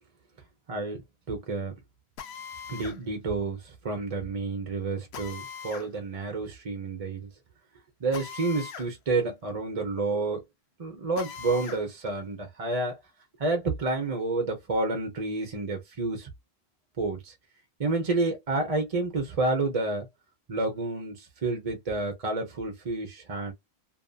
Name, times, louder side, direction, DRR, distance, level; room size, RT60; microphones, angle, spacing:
voice 1, 1.3-1.7 2.7-7.3 8.0-10.4 10.8-13.0 13.4-16.3 17.0-17.3 17.8-20.1 20.5-23.5, right 3 dB, 40° right, 0.7 m, -29 dB
Drill, 2.2-3.0 5.1-5.9 8.1-8.9 9.3-9.4 11.2-11.8, left 7 dB, 80° left, 0.9 m, -40 dB
2.8 x 2.5 x 2.2 m
omnidirectional pair, 1.1 m